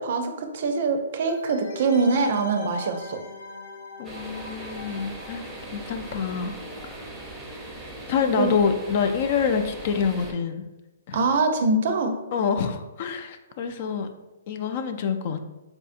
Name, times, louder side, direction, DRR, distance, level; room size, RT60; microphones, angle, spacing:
voice 1, 0.0-3.2 8.4-8.5 11.1-12.2, right 3 dB, 55° right, 6 dB, 0.5 m, -24 dB
sound 1, 1.3-6.8 7.0-7.1, left 3 dB, 60° left, 0.8 m, -42 dB
voice 2, 4.0-6.5 6.8-7.0 8.1-10.6 11.1-11.2 12.3-14.1 14.5-15.5, left 6 dB, 45° left, 7 dB, 0.3 m, -26 dB
sound 2, 4.0-10.3, right 1 dB, 10° right, 0.6 m, -39 dB
4.6 x 2.6 x 2.4 m, 1.0 s
hypercardioid pair, 150°, 0 cm